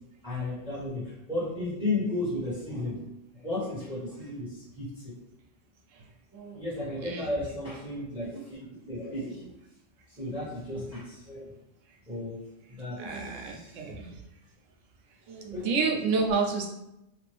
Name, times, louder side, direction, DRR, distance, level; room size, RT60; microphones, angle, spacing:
voice 1, 0.2-3.0 3.3-5.1 6.5-9.4 10.1-11.5 12.1-12.4 12.7-13.9 15.5-15.6, left 2 dB, 5° right, -10 dB, 1.3 m, -34 dB
voice 2, 7.0-7.4 9.3-9.4 12.9-14.2 15.3-16.7, right 4 dB, 85° right, 1 dB, 1.0 m, -30 dB
2.7 x 2.5 x 3.3 m, 0.88 s
omnidirectional pair, 1.3 m